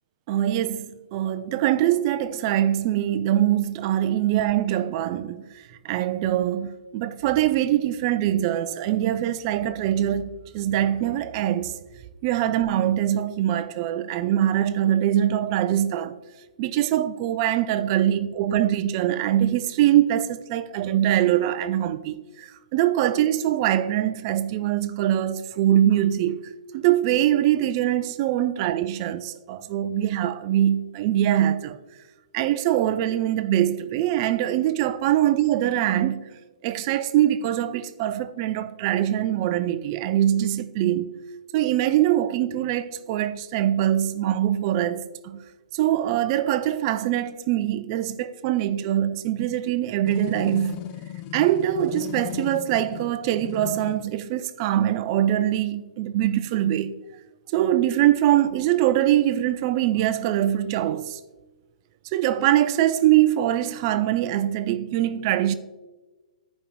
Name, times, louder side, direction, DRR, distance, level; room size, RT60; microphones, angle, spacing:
voice 1, 0.3-11.8 12.2-16.2 16.6-31.8 32.3-36.3 36.6-41.2 41.5-45.4 45.7-50.8 51.3-56.9 57.5-61.2 62.1-65.5, right 12 dB, 35° right, 0.5 m, -23 dB
sound 1, 50.0-54.0, left 12 dB, 30° left, 0.5 m, -36 dB
13.0 x 5.3 x 3.0 m
hypercardioid pair, 130°, 4 cm